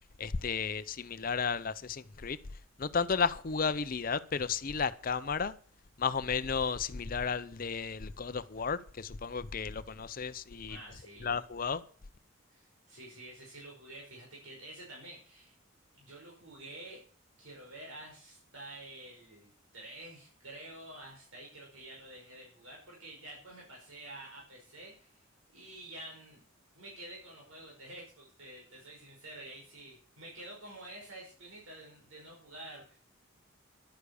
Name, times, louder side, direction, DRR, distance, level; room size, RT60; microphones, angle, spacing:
voice 1, 0.2-2.4 2.8-5.5 6.0-10.8 11.2-11.8, left 5 dB, 45° left, 0.6 m, -33 dB
voice 2, 10.6-11.3 12.5-15.6 15.9-17.0 17.4-25.3 25.5-26.4 26.8-33.0, right 1 dB, 85° right, 5.4 m, -49 dB
11.5 x 9.6 x 6.9 m
head